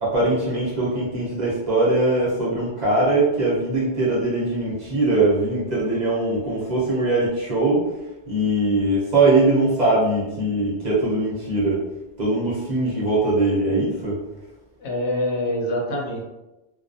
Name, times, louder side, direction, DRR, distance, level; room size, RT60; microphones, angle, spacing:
voice 1, 0.0-7.9 8.3-11.8 12.2-14.2, right 2 dB, 45° right, -7 dB, 0.8 m, -21 dB
voice 2, 14.8-16.2, left 1 dB, 75° left, -1 dB, 0.9 m, -25 dB
2.3 x 2.2 x 2.6 m, 1.0 s
omnidirectional pair, 1.2 m